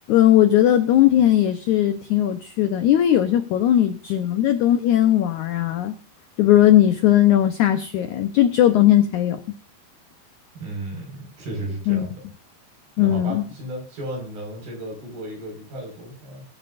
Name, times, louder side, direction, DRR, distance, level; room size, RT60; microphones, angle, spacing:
voice 1, 0.1-5.9 6.4-9.4 11.9-12.1 13.0-13.4, left 12 dB, 85° left, 9 dB, 1.7 m, -18 dB
voice 2, 10.6-12.2 13.0-16.5, right 1 dB, 65° right, 1 dB, 7.1 m, -34 dB
21.5 x 9.0 x 2.6 m, 0.37 s
omnidirectional pair, 4.7 m